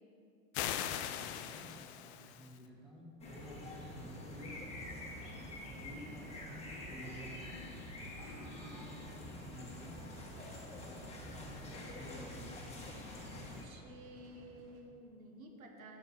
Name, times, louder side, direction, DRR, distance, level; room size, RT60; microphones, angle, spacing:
sound 1, 0.5-2.6, left 10 dB, 55° left, 0.5 m, -40 dB
voice 1, 1.2-4.7 5.6-7.6 8.5-10.0 10.8-12.5, equal, ahead, -4 dB, 1.5 m, -52 dB
sound 2, 3.2-13.7, left 1 dB, 15° left, 1.5 m, -47 dB
sound 3, 3.8-14.8, right 2 dB, 60° right, 1.3 m, -61 dB
voice 2, 13.3-16.0, right 1 dB, 85° right, 2 dB, 1.0 m, -53 dB
6.1 x 5.4 x 5.9 m, 2.7 s
hypercardioid pair, 90°, 41 cm